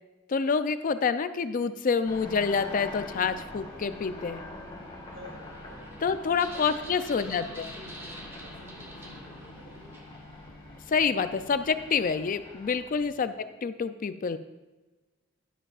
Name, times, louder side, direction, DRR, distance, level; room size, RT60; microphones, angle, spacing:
voice 1, 0.3-4.4 6.0-7.7 10.9-13.3 13.6-14.4, left 5 dB, 40° left, 11 dB, 0.4 m, -27 dB
sound 1, 2.0-13.1, left 2 dB, 25° left, 2.1 m, -45 dB
sound 2, 4.2-10.5, right 1 dB, 10° right, 1.1 m, -48 dB
voice 2, 5.1-6.0 6.5-6.9 7.1-8.1 8.4-10.0 13.1-13.3, equal, 70° right, -3 dB, 3.2 m, -49 dB
11.0 x 11.0 x 2.4 m, 1.2 s
head